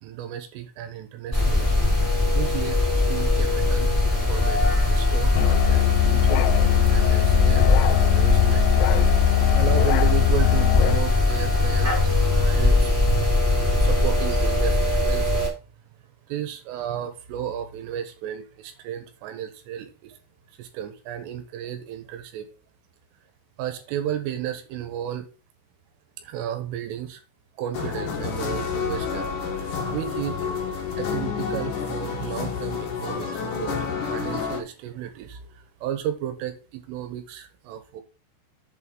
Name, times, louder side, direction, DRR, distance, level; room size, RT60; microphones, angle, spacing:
voice 1, 0.0-1.8 2.1-3.9 4.3-14.8 15.1-15.5 16.3-20.2 20.6-22.5 23.6-25.3 26.2-27.2 27.6-30.4 31.0-38.0, right 10 dB, 80° right, 7 dB, 3.9 m, -33 dB
sound 1, 1.3-15.5, left 2 dB, 5° right, 3.1 m, -21 dB
Musical instrument, 5.3-11.1, left 19 dB, 85° left, 3.2 m, -21 dB
sound 2, 27.7-34.6, left 6 dB, 60° left, 2.3 m, -29 dB
7.7 x 5.6 x 5.5 m, 0.33 s
omnidirectional pair, 5.9 m